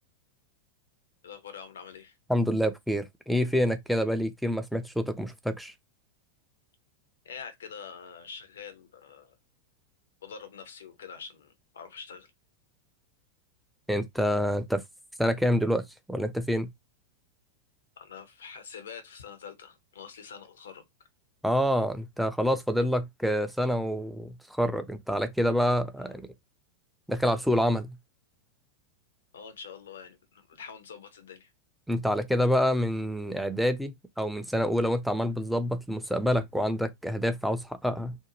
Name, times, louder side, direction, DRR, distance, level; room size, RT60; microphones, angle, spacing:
voice 1, 1.2-2.2 7.2-9.4 10.2-12.3 18.0-20.8 26.0-26.2 29.3-31.5, left 6 dB, 65° left, 0.6 m, -45 dB
voice 2, 2.3-5.7 13.9-14.8 15.2-15.8 16.1-16.7 21.4-26.2 27.1-28.0 31.9-38.2, equal, ahead, 0.4 m, -27 dB
2.6 x 2.1 x 2.9 m
figure-of-eight pair, 90°, 0 cm